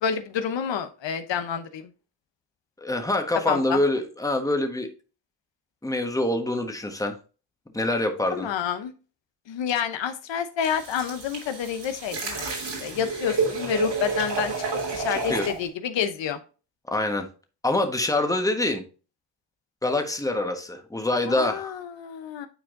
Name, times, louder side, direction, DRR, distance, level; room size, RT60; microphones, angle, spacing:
voice 1, 0.0-1.9 3.5-3.8 8.3-8.9 9.5-12.5 12.8-14.5 14.9-16.4 21.3-22.5, left 8 dB, 75° left, 0.8 m, -28 dB
voice 2, 2.8-4.9 5.8-7.2 7.7-8.5 15.1-15.5 16.9-17.3 17.6-18.9 19.8-21.8, left 2 dB, 10° left, 1.3 m, -25 dB
sound 1, 10.6-15.6, right 4 dB, 65° right, 3.2 m, -30 dB
9.1 x 4.5 x 2.6 m
cardioid pair, 70°, 44 cm